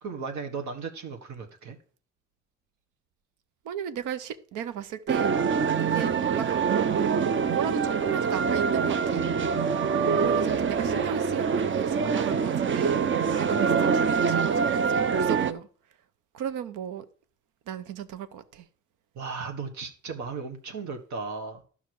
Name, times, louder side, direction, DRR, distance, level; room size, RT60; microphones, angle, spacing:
voice 1, 0.0-1.8 19.1-21.7, right 5 dB, 70° right, 1.5 m, -36 dB
voice 2, 3.6-5.4 5.8-9.3 10.2-15.7 16.3-17.1 17.7-18.7, right 9 dB, 90° right, 0.9 m, -35 dB
sound 1, 5.1-15.5, right 6 dB, 40° right, 0.7 m, -25 dB
11.5 x 5.8 x 4.7 m
cardioid pair, 90°, 30 cm